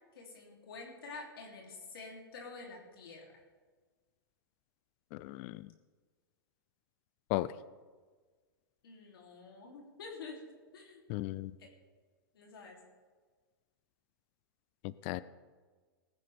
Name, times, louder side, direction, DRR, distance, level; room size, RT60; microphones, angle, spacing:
voice 1, 0.1-3.3 8.8-10.4 10.7-11.0 11.6-11.7 12.3-12.8, left 4 dB, 75° left, -1 dB, 3.1 m, -48 dB
voice 2, 5.1-5.7 7.3-7.6 11.1-11.5 14.8-15.2, left 17 dB, 35° left, 17 dB, 0.3 m, -36 dB
19.5 x 10.5 x 3.5 m, 1.4 s
hypercardioid pair, 145°, 12 cm